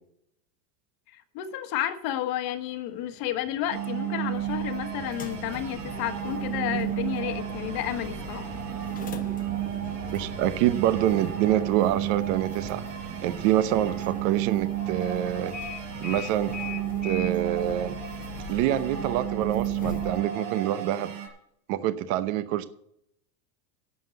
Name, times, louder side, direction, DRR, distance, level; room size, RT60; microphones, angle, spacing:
voice 1, 1.1-8.5, left 11 dB, 45° left, 9 dB, 1.3 m, -31 dB
sound 1, 2.8-17.3, right 6 dB, 20° right, 0.6 m, -44 dB
sound 2, 3.7-21.3, right 12 dB, 80° right, 5.2 m, -33 dB
sound 3, 4.3-20.2, left 6 dB, 15° left, 0.8 m, -42 dB
voice 2, 10.1-12.8 13.2-15.5 16.0-16.5 17.0-18.0 18.5-21.1 21.7-22.6, right 12 dB, 50° right, 12 dB, 0.8 m, -26 dB
11.5 x 7.7 x 7.6 m, 0.75 s
supercardioid pair, 155°, 50 cm